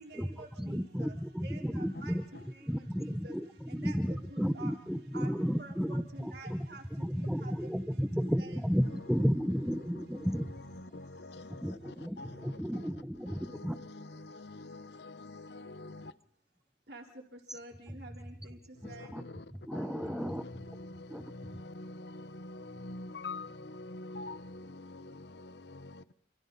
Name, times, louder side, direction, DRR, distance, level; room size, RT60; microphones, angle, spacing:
voice 1, 0.0-0.8 1.4-2.1 3.2-3.3 3.8-4.2 4.6-4.7 5.1-5.3 5.6-6.0 6.3-6.8 7.4-7.5 8.4-8.6 16.9-17.0 17.5-18.6 18.9-19.1, right 3 dB, 60° right, 4.0 m, -48 dB
voice 2, 0.6-2.2 2.6-10.6 11.6-13.8 19.0-19.2 19.7-20.4 21.1-21.2 21.5-21.6, equal, ahead, 1.0 m, -33 dB
voice 3, 10.8-12.9 13.3-16.1 18.8-19.5 19.7-26.1, left 2 dB, 65° left, 0.9 m, -46 dB
28.0 x 27.0 x 4.2 m
head